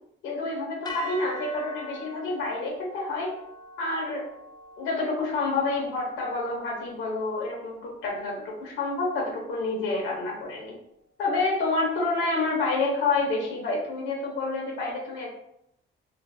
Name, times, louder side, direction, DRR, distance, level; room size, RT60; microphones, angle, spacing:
voice 1, 0.2-3.3 3.8-4.3 4.8-10.7 11.2-15.3, left 3 dB, 90° left, -2 dB, 0.8 m, -28 dB
sound 1, 0.8-9.1, left 1 dB, 20° left, 0.4 m, -44 dB
2.5 x 2.5 x 2.5 m, 0.76 s
cardioid pair, 90°, 20 cm